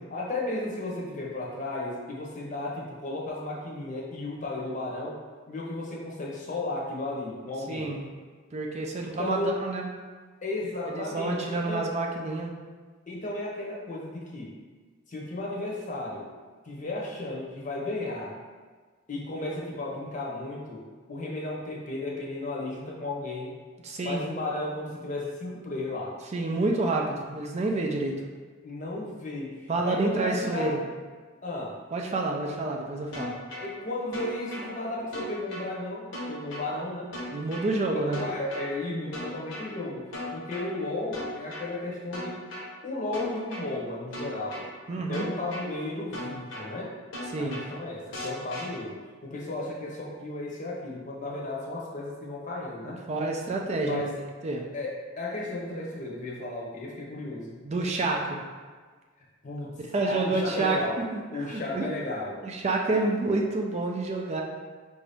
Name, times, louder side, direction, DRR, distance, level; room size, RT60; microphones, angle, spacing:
voice 1, 0.1-5.2 5.5-8.0 9.0-9.6 10.4-11.9 13.1-14.6 15.1-16.3 16.6-18.4 19.1-23.5 24.0-26.2 28.6-30.7 31.4-31.8 33.6-37.1 37.9-42.4 42.8-44.7 45.1-46.9 47.4-53.0 53.8-54.2 54.7-57.6 59.4-59.7 60.1-61.0 61.3-62.4 62.9-63.0, left 2 dB, 40° left, -3 dB, 0.8 m, -34 dB
voice 2, 7.7-8.0 8.5-9.9 10.9-12.5 23.8-24.4 26.3-28.2 29.7-30.8 31.9-33.4 37.3-38.2 44.9-45.3 47.3-47.6 52.8-54.0 54.4-54.7 57.6-58.4 59.9-61.9 62.4-64.4, right 2 dB, 35° right, 1 dB, 0.4 m, -28 dB
sound 1, 33.1-33.7 34.1-34.7 35.1-35.7 36.1-36.7 37.1-37.7 38.1-38.7 39.1-39.7 40.1-40.7 41.1-41.7 42.1-42.7 43.1-43.7 44.1-44.7 45.1-45.7 46.1-46.7 47.1-47.7 48.1-48.7, left 1 dB, 80° left, 1.0 m, -37 dB
4.7 x 2.6 x 3.4 m, 1.5 s
head